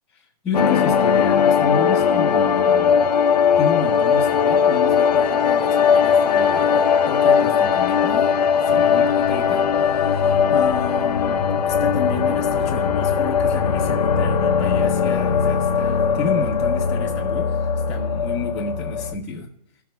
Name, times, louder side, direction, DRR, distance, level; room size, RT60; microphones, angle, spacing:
voice 1, 0.2-3.1 3.6-8.3 8.6-19.5, left 5 dB, 5° left, -8 dB, 1.0 m, -30 dB
sound 1, 0.5-19.2, left 7 dB, 90° left, 0.9 m, -19 dB
17.5 x 7.5 x 2.2 m, 0.77 s
hypercardioid pair, 165°, 20 cm